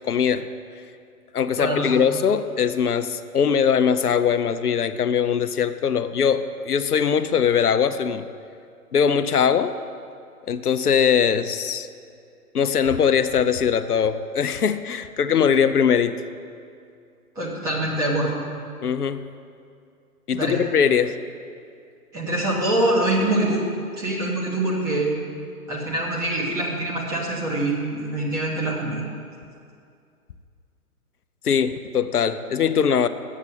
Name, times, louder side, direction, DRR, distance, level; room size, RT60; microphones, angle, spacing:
voice 1, 0.0-0.5 1.3-8.2 8.9-9.7 10.5-11.9 12.5-16.1 18.8-19.3 20.3-21.1 31.4-33.1, left 7 dB, 80° left, 11 dB, 0.6 m, -21 dB
voice 2, 1.6-2.0 17.3-18.4 20.3-20.6 22.1-23.7 24.0-25.2 25.7-29.0, right 1 dB, 10° right, -5 dB, 0.8 m, -24 dB
8.0 x 7.3 x 8.4 m, 2.3 s
figure-of-eight pair, 135°, 45 cm